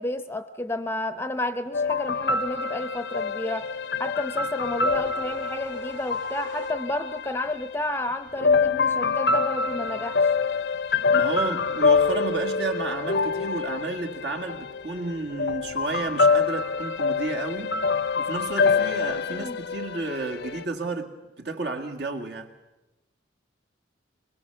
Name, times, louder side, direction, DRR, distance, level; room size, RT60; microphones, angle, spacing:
voice 1, 0.0-3.7 4.0-10.3 19.3-19.6, left 1 dB, 15° left, 0.7 m, -31 dB
sound 1, 1.7-7.7 8.4-20.7, left 4 dB, 60° left, 0.6 m, -26 dB
sound 2, 4.0-7.2, right 5 dB, 85° right, 2.2 m, -47 dB
voice 2, 11.1-17.8 18.2-21.1 21.4-22.5, right 3 dB, 65° right, 2.1 m, -31 dB
22.5 x 21.5 x 7.0 m
head